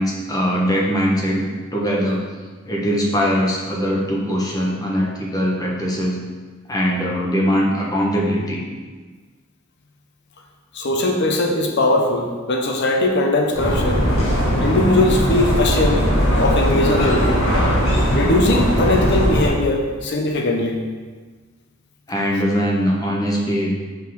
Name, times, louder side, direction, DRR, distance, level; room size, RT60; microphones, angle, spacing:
voice 1, 0.0-2.2 2.7-6.2 6.7-8.6 22.1-23.7, equal, 20° left, -2 dB, 1.1 m, -21 dB
voice 2, 10.7-14.0 14.6-16.1 16.4-17.3 18.1-20.8, left 2 dB, 60° left, 2 dB, 1.0 m, -20 dB
sound 1, 13.5-19.5, equal, 80° left, 2.2 m, -19 dB
6.0 x 4.1 x 6.2 m, 1.4 s
head